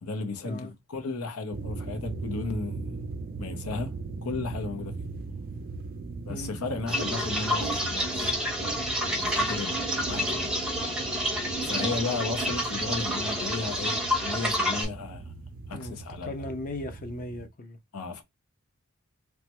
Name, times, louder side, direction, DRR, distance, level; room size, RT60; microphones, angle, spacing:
voice 1, 0.0-3.0 3.4-3.9 4.2-5.1 6.2-8.3 9.1-10.5 11.6-15.3 15.7-16.5 17.9-18.2, left 3 dB, 85° left, 0.7 m, -34 dB
sound 1, 1.5-17.5, right 3 dB, 40° right, 0.4 m, -39 dB
sound 2, 6.9-14.9, equal, 5° right, 0.6 m, -29 dB
voice 2, 16.2-17.8, left 1 dB, 40° left, 0.5 m, -37 dB
3.2 x 2.1 x 2.9 m
head